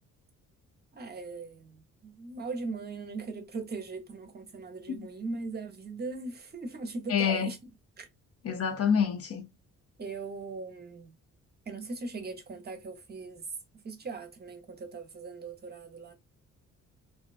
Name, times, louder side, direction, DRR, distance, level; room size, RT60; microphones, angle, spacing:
voice 1, 0.9-7.6 8.0-8.1 10.0-11.1 11.7-13.5 13.8-16.1, right 3 dB, 35° right, 0.7 m, -39 dB
voice 2, 7.1-7.5 8.4-9.5, left 7 dB, 50° left, 0.6 m, -27 dB
2.6 x 2.2 x 2.4 m
cardioid pair, 90°, 30 cm